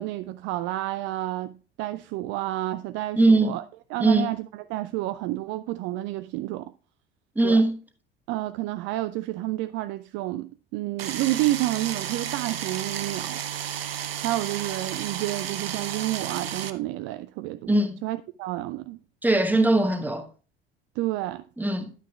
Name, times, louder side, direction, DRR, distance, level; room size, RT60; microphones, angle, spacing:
voice 1, 0.0-3.6 3.9-6.7 7.4-7.6 8.3-13.4 14.2-17.7 18.0-19.0 21.0-21.4, right 16 dB, 40° right, 0.4 m, -30 dB
voice 2, 3.2-3.6 4.0-4.3 7.3-7.8 17.7-18.0 19.2-20.2 21.6-21.9, right 2 dB, 5° right, 1.1 m, -20 dB
sound 1, 11.0-16.7, right 9 dB, 75° right, 0.7 m, -32 dB
11.0 x 9.0 x 2.3 m
figure-of-eight pair, 65°, 30 cm